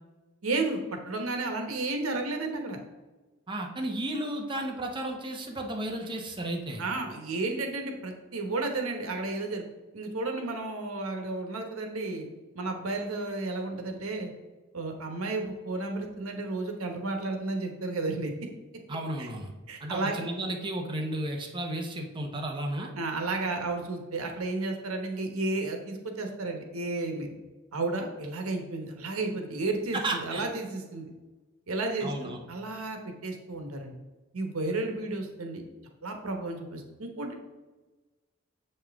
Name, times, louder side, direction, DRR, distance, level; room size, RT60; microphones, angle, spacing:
voice 1, 0.4-0.8 1.1-2.8 6.8-9.6 9.9-12.3 12.5-14.3 14.7-18.3 19.2-19.3 19.7-20.1 23.0-27.3 27.7-31.1 31.7-33.9 34.3-35.6 36.0-37.3, right 2 dB, 85° right, 4 dB, 1.1 m, -32 dB
voice 2, 3.5-6.8 18.9-19.5 19.8-22.9 29.9-30.5 32.0-32.4, right 1 dB, 25° right, 1 dB, 0.8 m, -33 dB
7.4 x 5.5 x 3.5 m, 1.2 s
head